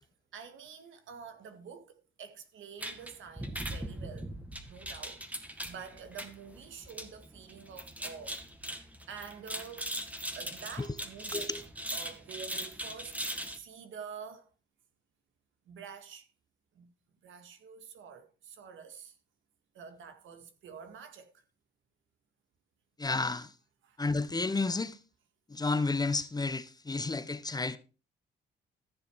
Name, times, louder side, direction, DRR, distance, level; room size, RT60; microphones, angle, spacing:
voice 1, 0.3-4.3 4.7-8.4 9.1-9.9 10.3-11.5 11.9-13.2 13.5-14.5 15.7-16.3 16.7-16.9 17.2-19.2 19.7-21.4 23.8-24.0, right 6 dB, 75° right, 2.0 m, -47 dB
sound 1, 2.8-13.6, right 1 dB, 5° right, 1.8 m, -40 dB
voice 2, 23.0-23.5 24.0-25.0 25.5-27.8, left 3 dB, 20° left, 0.9 m, -31 dB
14.0 x 6.7 x 4.7 m
cardioid pair, 90°, 20 cm